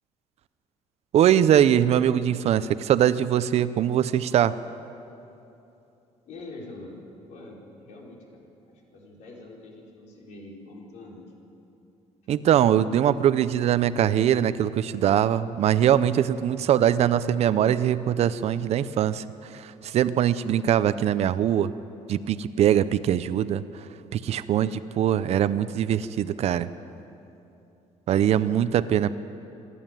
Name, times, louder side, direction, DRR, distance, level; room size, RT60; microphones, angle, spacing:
voice 1, 1.1-4.5 12.3-19.2 19.6-21.7 22.1-23.6 24.1-26.7 28.1-29.1, right 10 dB, 60° right, 14 dB, 0.7 m, -22 dB
voice 2, 6.3-7.0 7.3-11.2, left 2 dB, 75° left, -2 dB, 4.4 m, -44 dB
26.5 x 11.5 x 9.0 m, 2.8 s
cardioid pair, 145°, 12 cm